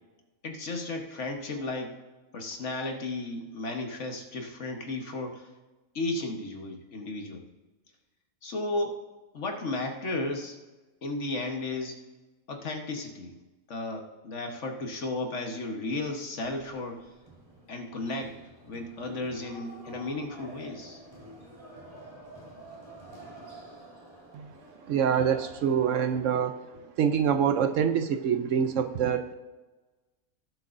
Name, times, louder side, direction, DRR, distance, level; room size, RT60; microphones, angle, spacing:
voice 1, 0.4-2.0 2.3-5.5 5.9-7.4 8.4-9.0 9.3-10.6 11.0-12.0 12.5-13.4 13.7-17.1 17.7-21.0, left 2 dB, 55° left, 3 dB, 1.5 m, -34 dB
sound 1, 16.4-26.0, right 1 dB, 25° right, 2.4 m, -49 dB
voice 2, 24.9-26.6 27.0-29.3, right 8 dB, 70° right, 9 dB, 0.9 m, -25 dB
18.5 x 7.9 x 2.6 m, 1.2 s
omnidirectional pair, 1.5 m